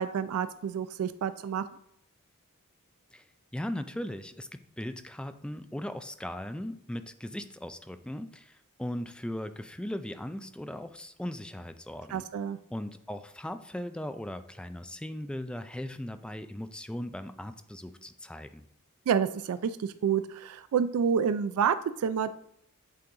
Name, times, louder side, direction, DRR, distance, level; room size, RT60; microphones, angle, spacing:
voice 1, 0.0-1.6 12.1-12.6 19.1-22.3, right 7 dB, 80° right, 12 dB, 0.3 m, -28 dB
voice 2, 3.5-12.2 12.7-18.6, left 1 dB, 5° left, 10 dB, 0.3 m, -38 dB
8.5 x 3.8 x 3.8 m, 0.73 s
head